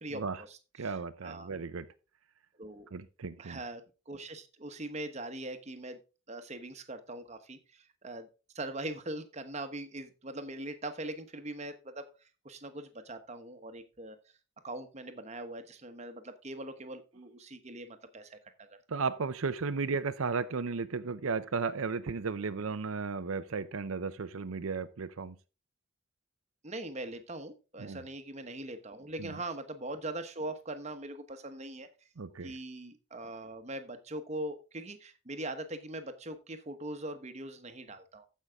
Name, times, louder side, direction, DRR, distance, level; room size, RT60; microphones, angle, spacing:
voice 1, 0.0-1.5 2.6-2.9 3.4-6.0 6.3-8.3 8.5-14.2 14.6-19.0 26.6-31.9 32.4-38.3, right 1 dB, 30° right, 1.1 m, -41 dB
voice 2, 0.8-1.9 2.9-3.6 18.9-25.3 27.8-28.0 29.2-29.3 32.2-32.5, right 4 dB, 85° right, 0.6 m, -34 dB
14.5 x 5.6 x 3.5 m
head